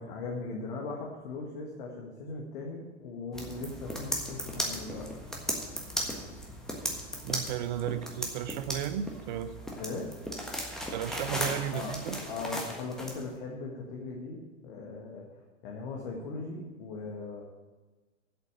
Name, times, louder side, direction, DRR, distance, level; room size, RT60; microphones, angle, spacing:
voice 1, 0.0-5.1 9.7-10.1 11.7-12.0 12.3-15.3 15.6-17.4, left 3 dB, 45° left, -1 dB, 1.7 m, -39 dB
sound 1, 3.3-13.2, equal, ahead, 1.4 m, -36 dB
voice 2, 7.2-9.5 10.9-12.2, right 10 dB, 40° right, 12 dB, 0.7 m, -34 dB
8.1 x 7.7 x 8.8 m, 1.2 s
figure-of-eight pair, 100°, 37 cm